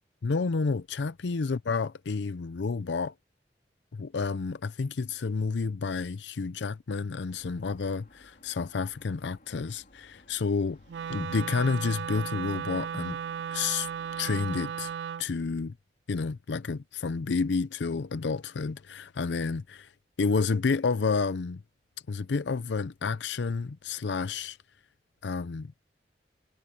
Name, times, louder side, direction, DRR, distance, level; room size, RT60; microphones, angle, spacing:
voice 1, 0.2-3.1 3.9-10.8 11.1-13.2 13.5-13.9 14.2-14.9 15.2-15.7 16.1-19.9 20.2-21.6 22.1-24.6 25.2-25.7, left 4 dB, 90° left, 0.5 m, -30 dB
sound 1, 7.3-14.9, left 1 dB, 50° left, 3.6 m, -58 dB
Wind instrument woodwind instrument, 10.9-15.3, right 8 dB, 75° right, 0.3 m, -35 dB
head